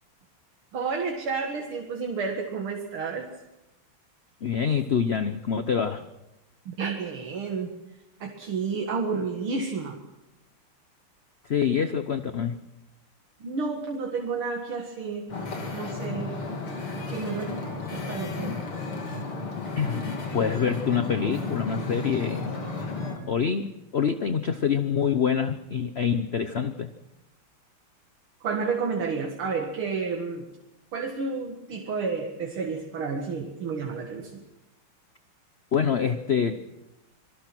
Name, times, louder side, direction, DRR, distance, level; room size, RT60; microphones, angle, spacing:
voice 1, 0.7-3.3 6.7-7.7 8.2-10.0 13.4-15.3 15.7-16.3 17.1-17.5 17.9-18.6 28.4-30.4 30.9-34.4, right 4 dB, 75° right, 1 dB, 2.7 m, -30 dB
voice 2, 4.4-6.0 11.4-12.6 18.4-18.6 19.8-22.5 23.3-26.9 35.7-36.6, left 7 dB, 55° left, 9 dB, 0.7 m, -26 dB
Wind / Ocean, 15.3-23.2, left 3 dB, 80° left, 4.2 m, -33 dB
26.5 x 20.5 x 6.1 m, 0.94 s
omnidirectional pair, 2.4 m